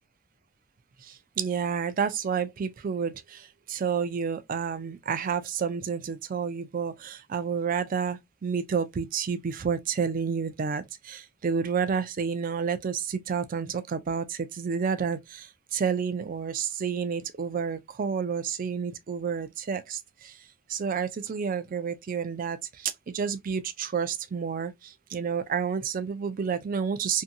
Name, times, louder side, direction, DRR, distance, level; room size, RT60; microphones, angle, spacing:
voice 1, 1.0-20.3 20.7-27.2, right 6 dB, 40° right, 0.3 m, -30 dB
2.7 x 2.6 x 2.5 m
head